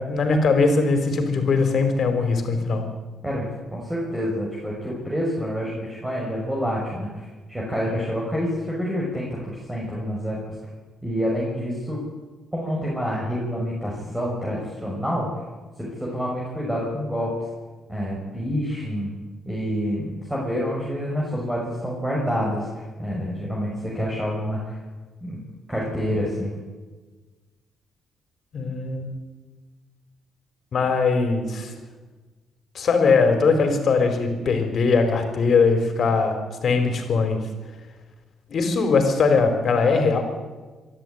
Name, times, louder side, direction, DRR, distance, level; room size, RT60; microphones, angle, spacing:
voice 1, 0.0-2.8 28.5-29.1 30.7-31.7 32.7-37.5 38.5-40.2, left 4 dB, 55° left, 6 dB, 4.3 m, -20 dB
voice 2, 3.2-10.4 11.0-12.0 12.5-15.3 15.8-17.3 17.9-19.1 19.4-24.7 25.2-25.4 25.7-26.5, equal, 10° right, -4 dB, 6.2 m, -27 dB
24.5 x 12.5 x 9.4 m, 1.3 s
cardioid pair, 90°, 0 cm